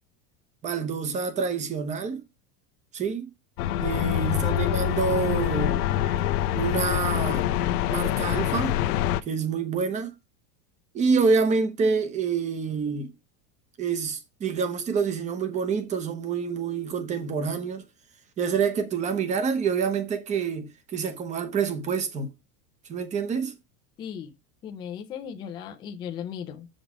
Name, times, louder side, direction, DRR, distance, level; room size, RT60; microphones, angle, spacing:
voice 1, 0.6-2.2 2.9-3.3 3.8-5.8 6.6-7.5 7.9-8.8 9.3-10.1 10.9-13.1 13.8-17.8 18.4-22.3 22.9-23.5, right 5 dB, 15° right, 0.8 m, -27 dB
sound 1, 3.6-9.2, left 12 dB, 75° left, 0.8 m, -25 dB
voice 2, 4.3-4.7 24.0-24.3 24.6-26.7, left 8 dB, 10° left, 0.4 m, -37 dB
7.3 x 5.3 x 4.9 m
supercardioid pair, 175°, 45 cm